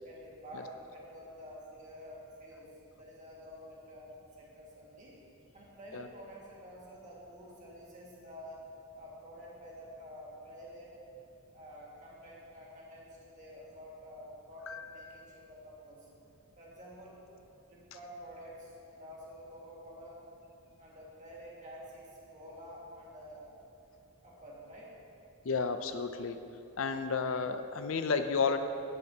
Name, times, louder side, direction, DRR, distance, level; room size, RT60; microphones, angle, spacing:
voice 1, 0.0-2.7 3.0-5.1 5.5-8.6 8.9-10.9 11.5-16.1 16.6-17.2 17.7-20.2 20.8-23.5 24.2-24.9 26.9-27.1, equal, 35° right, -5 dB, 2.0 m, -49 dB
voice 2, 25.4-26.4 26.8-28.6, left 5 dB, 60° left, 9 dB, 0.5 m, -31 dB
10.5 x 9.9 x 2.9 m, 2.9 s
head